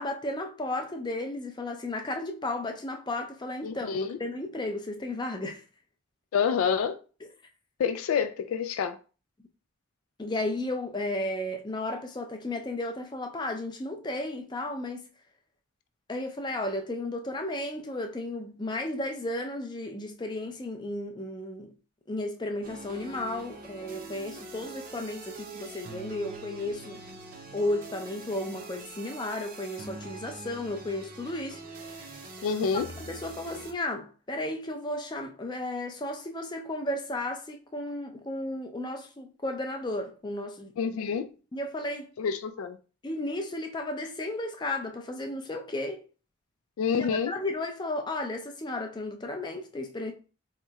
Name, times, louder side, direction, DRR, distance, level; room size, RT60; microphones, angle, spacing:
voice 1, 0.0-5.6 10.2-15.1 16.1-21.7 22.1-27.0 27.5-32.1 32.7-40.7 41.5-42.1 43.0-46.0 46.9-50.1, left 1 dB, 20° left, 0.4 m, -34 dB
voice 2, 3.6-4.2 6.3-7.0 7.8-9.0 32.4-32.9 40.8-41.3 42.2-42.8 46.8-47.3, left 6 dB, 85° left, 0.3 m, -28 dB
sound 1, 22.6-33.7, right 3 dB, 40° right, 0.6 m, -44 dB
4.2 x 2.9 x 2.3 m
head